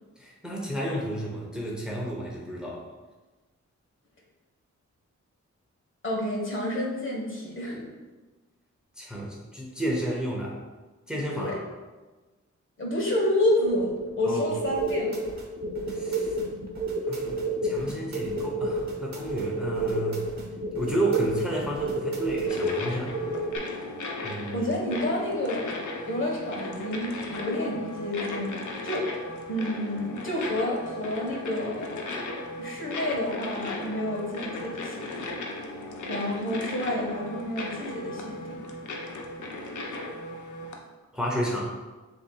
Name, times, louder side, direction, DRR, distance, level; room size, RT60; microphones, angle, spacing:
voice 1, 0.2-2.8 9.0-10.6 11.1-11.6 14.3-14.5 15.9-16.3 17.1-20.2 20.7-23.1 24.2-24.6 41.1-41.7, right 1 dB, 5° right, -3 dB, 0.8 m, -31 dB
voice 2, 6.0-7.9 11.3-11.5 12.8-15.2 24.5-25.7 26.0-29.1 29.5-32.0 32.6-35.3 36.1-38.5, left 1 dB, 40° left, -3 dB, 1.3 m, -29 dB
sound 1, 13.6-23.6, right 1 dB, 30° right, 1.0 m, -30 dB
sound 2, 14.6-22.5, right 2 dB, 60° right, 0.9 m, -43 dB
sound 3, 22.5-40.8, left 2 dB, 75° left, 0.7 m, -37 dB
7.2 x 2.8 x 2.3 m, 1.2 s
wide cardioid pair, 85°, 30 cm